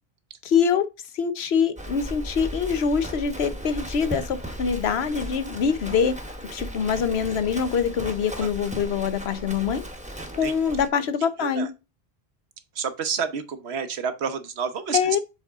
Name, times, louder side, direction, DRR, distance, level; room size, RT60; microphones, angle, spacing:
voice 1, 0.4-0.9 1.1-6.1 6.5-9.8 10.3-11.7 14.9-15.2, left 6 dB, 80° left, 1.0 m, -24 dB
Livestock farm animals working animals, 1.8-10.9, equal, 5° right, 0.9 m, -36 dB
voice 2, 12.8-15.2, right 6 dB, 80° right, 1.1 m, -29 dB
7.2 x 4.1 x 3.5 m
omnidirectional pair, 1.1 m